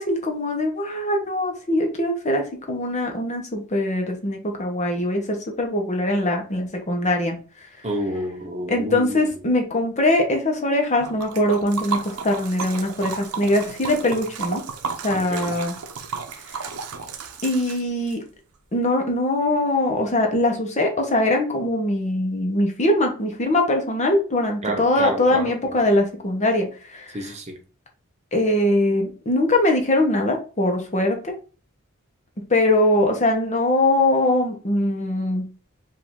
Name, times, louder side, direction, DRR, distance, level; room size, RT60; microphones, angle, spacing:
voice 1, 0.0-7.4 8.7-14.6 15.0-15.8 16.5-16.6 17.4-18.2 18.7-27.2 28.3-31.3 32.5-35.4, left 1 dB, 30° left, 1.0 m, -22 dB
voice 2, 7.8-9.3 15.1-15.5 24.6-25.8 27.1-27.6, right 1 dB, 30° right, 0.7 m, -30 dB
Liquid, 11.0-18.2, right 5 dB, 85° right, 0.7 m, -33 dB
5.0 x 2.7 x 3.6 m
head